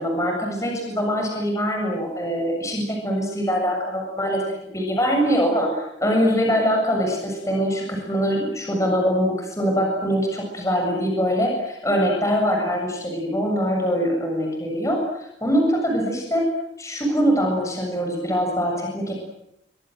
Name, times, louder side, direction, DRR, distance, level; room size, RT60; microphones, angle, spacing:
voice 1, 0.0-16.5 16.8-19.1, equal, 15° left, 1 dB, 7.2 m, -23 dB
26.5 x 24.5 x 7.9 m, 0.80 s
head